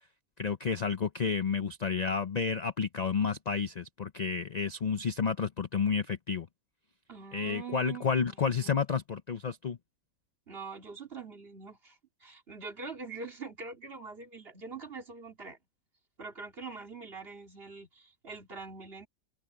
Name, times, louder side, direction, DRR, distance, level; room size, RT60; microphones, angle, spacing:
voice 1, 0.4-6.5 7.3-9.8, left 6 dB, 50° left, 0.5 m, -30 dB
voice 2, 7.1-8.7 10.5-15.6 16.2-19.1, right 4 dB, 45° right, 2.6 m, -44 dB
omnidirectional pair, 1.5 m